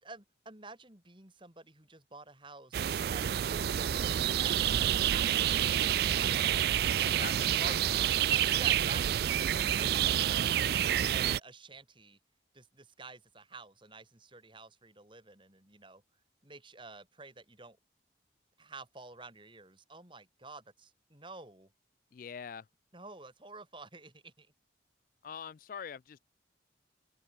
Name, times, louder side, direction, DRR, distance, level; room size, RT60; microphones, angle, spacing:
voice 1, 0.0-2.8 3.1-6.5 7.0-7.7 8.3-10.5 11.1-12.2 12.5-16.0 16.4-17.8 18.6-21.7 22.9-24.5, right 3 dB, 25° right, 3.4 m, -50 dB
sound 1, 2.7-11.4, right 10 dB, 55° right, 0.3 m, -28 dB
voice 2, 7.6-8.0 22.1-22.6 25.2-26.2, left 7 dB, 45° left, 0.3 m, -43 dB
open air
head